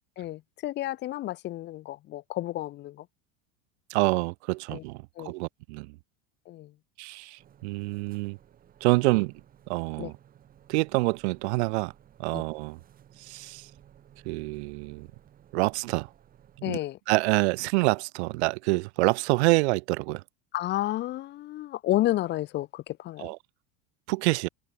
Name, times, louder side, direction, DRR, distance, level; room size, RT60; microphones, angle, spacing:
voice 1, 0.2-3.0 4.7-4.8 5.2-5.3 6.5-6.7 10.0-10.1 12.3-12.4 16.6-17.0 20.5-23.3, left 15 dB, 30° left, 1.6 m, -31 dB
voice 2, 3.9-6.0 7.0-8.4 8.8-9.3 9.7-10.1 10.7-11.9 12.2-12.8 13.2-13.7 14.2-15.1 15.5-16.1 16.7-16.8 17.1-20.2 23.2-23.4 24.1-24.5, right 25 dB, 65° right, 2.4 m, -27 dB
sound 1, 7.4-16.6, right 10 dB, 25° right, 7.8 m, -57 dB
cardioid pair, 180°, 35 cm